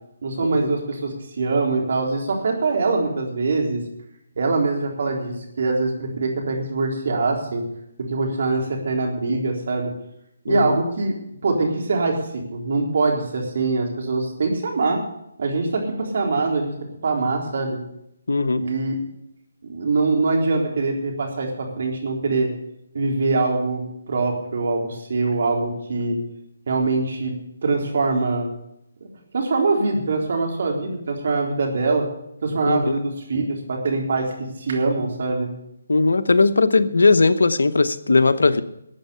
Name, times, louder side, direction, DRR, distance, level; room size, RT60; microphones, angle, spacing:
voice 1, 0.2-3.8 4.4-7.6 8.1-9.9 10.4-11.1 11.4-12.2 12.5-15.0 15.4-16.7 17.0-17.8 18.5-19.0 19.7-22.5 22.9-26.2 26.7-27.3 27.6-28.5 29.0-29.1 29.3-32.1 32.4-34.3 34.6-35.5, right 3 dB, 55° right, 1 dB, 3.8 m, -23 dB
voice 2, 18.3-18.6 32.7-33.0 35.9-38.6, left 3 dB, 75° left, 11 dB, 1.0 m, -18 dB
13.0 x 8.6 x 8.1 m, 0.79 s
figure-of-eight pair, 150°, 0 cm